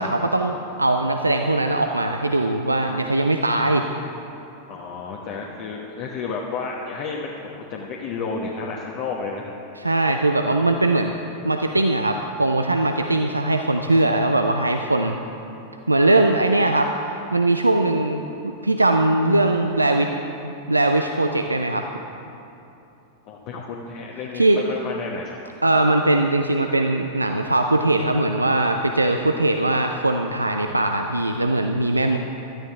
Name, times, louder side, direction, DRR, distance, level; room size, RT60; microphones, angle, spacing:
voice 1, 0.0-3.9 9.8-11.1 11.4-15.2 15.9-20.1 20.4-21.9 24.3-24.6 25.6-32.2, right 2 dB, 85° right, 5 dB, 0.5 m, -20 dB
voice 2, 4.7-9.5 23.2-25.4, left 4 dB, 45° left, -1 dB, 1.1 m, -31 dB
17.0 x 12.5 x 3.6 m, 2.9 s
figure-of-eight pair, 90°, 0 cm